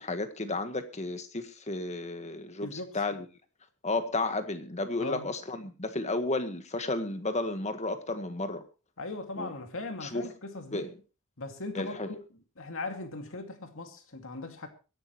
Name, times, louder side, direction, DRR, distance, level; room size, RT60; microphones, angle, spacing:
voice 1, 0.0-3.2 3.8-8.6 9.4-9.5 10.0-10.3 10.7-10.9 11.7-12.1, left 2 dB, 30° left, 1.6 m, -33 dB
voice 2, 2.6-3.0 5.0-5.3 9.0-10.9 11.4-12.2 12.6-14.7, left 2 dB, 60° left, 2.4 m, -39 dB
23.0 x 11.0 x 3.1 m
head